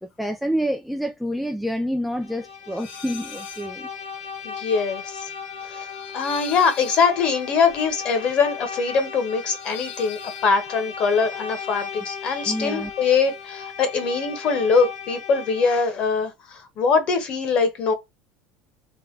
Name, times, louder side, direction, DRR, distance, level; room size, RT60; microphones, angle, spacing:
voice 1, 0.0-3.9 12.5-12.9, equal, ahead, 0.4 m, -28 dB
Bowed string instrument, 2.1-16.0, left 6 dB, 80° left, 1.7 m, -37 dB
sound 1, 2.8-3.7 4.0-12.2 12.5-13.5, left 8 dB, 55° left, 1.9 m, -43 dB
voice 2, 4.4-5.3 5.6-5.9 6.1-17.9, left 5 dB, 35° left, 1.3 m, -22 dB
3.5 x 3.4 x 3.3 m
cardioid pair, 170°, 3 cm